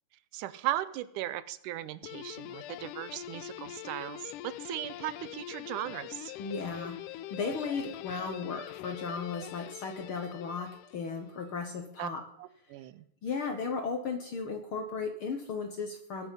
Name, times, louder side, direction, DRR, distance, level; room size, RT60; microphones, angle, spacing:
voice 1, 0.3-6.3 12.0-12.1 12.4-13.0, right 14 dB, 80° right, 15 dB, 2.1 m, -37 dB
Guitar, 2.0-11.4, left 13 dB, 80° left, 2.1 m, -44 dB
voice 2, 6.4-12.2 13.2-16.3, left 5 dB, 60° left, 5 dB, 1.5 m, -35 dB
21.0 x 7.2 x 5.6 m, 0.70 s
omnidirectional pair, 3.7 m